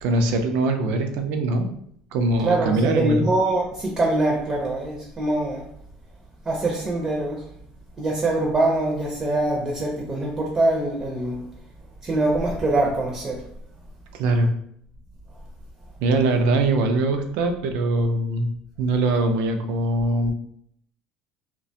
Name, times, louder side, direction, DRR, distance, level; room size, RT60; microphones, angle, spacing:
voice 1, 0.0-1.7 2.1-3.2 14.1-14.5 16.0-18.5 18.8-20.3, right 2 dB, 75° right, 6 dB, 0.4 m, -22 dB
voice 2, 2.4-5.7 6.4-7.4 8.0-11.4 12.0-13.4, right 2 dB, 20° right, -1 dB, 0.5 m, -23 dB
2.4 x 2.2 x 2.7 m, 0.67 s
cardioid pair, 120°, 3 cm